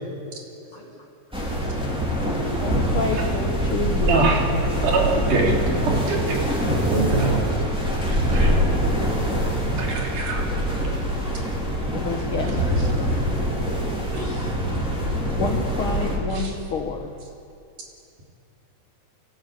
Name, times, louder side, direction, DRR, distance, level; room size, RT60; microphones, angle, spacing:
voice 1, 0.6-0.9 2.5-2.9 6.4-6.6 7.3-7.9 8.6-8.7 12.7-13.2 14.1-14.7, equal, 80° right, -5 dB, 7.5 m, -43 dB
sound 1, 1.3-16.2, equal, ahead, 4.0 m, -24 dB
voice 2, 2.6-5.1 11.9-12.6 15.3-17.1, left 4 dB, 60° left, 2 dB, 1.4 m, -29 dB
voice 3, 4.1-4.4 4.8-5.0 5.3-5.6 6.1-6.4 6.7-7.4 8.2-8.5 9.8-10.4 16.3-16.5, right 3 dB, 60° right, -1 dB, 4.4 m, -23 dB
24.0 x 17.5 x 8.7 m, 2.6 s
omnidirectional pair, 4.1 m